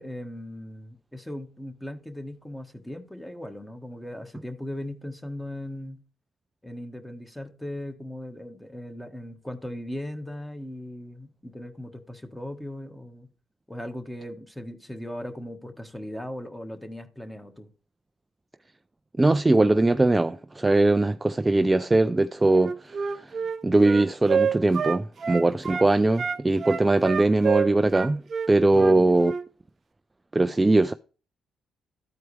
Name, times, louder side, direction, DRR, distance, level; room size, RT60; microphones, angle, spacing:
voice 1, 0.0-6.0 6.6-13.3 13.7-17.7 28.7-29.2, left 1 dB, 5° left, 1.4 m, -38 dB
voice 2, 19.2-23.3 23.6-28.2 28.5-29.3 30.3-30.9, right 2 dB, 15° right, 0.3 m, -21 dB
Wind instrument woodwind instrument, 22.5-25.9 26.2-29.4, right 6 dB, 45° right, 0.7 m, -28 dB
13.5 x 4.5 x 3.3 m
cardioid pair, 90°, 0 cm